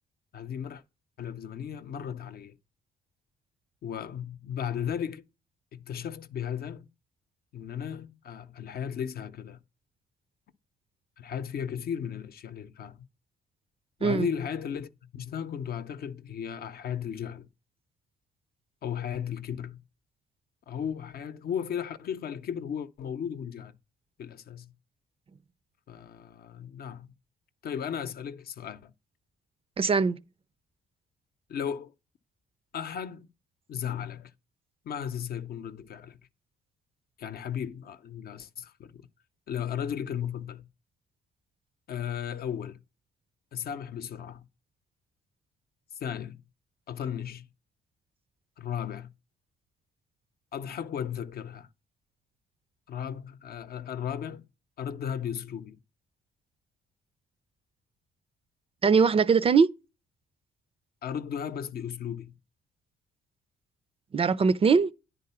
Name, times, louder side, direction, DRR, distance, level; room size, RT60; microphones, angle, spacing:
voice 1, 0.3-0.8 1.2-2.6 3.8-5.2 5.7-6.9 7.5-9.6 11.2-13.0 14.0-17.5 18.8-19.8 20.7-23.7 24.2-24.7 25.9-27.1 27.6-28.9 31.5-31.9 32.7-33.3 33.7-34.3 34.8-36.2 37.2-39.0 39.5-40.7 41.9-42.8 43.5-44.4 46.0-46.4 46.9-47.5 48.6-49.1 50.5-51.7 52.9-54.4 54.8-55.8 61.0-62.3, left 8 dB, 60° left, 0.7 m, -35 dB
voice 2, 29.8-30.2 58.8-59.7 64.1-64.9, right 5 dB, 35° right, 0.4 m, -21 dB
10.0 x 3.8 x 5.6 m
cardioid pair, 105°, 18 cm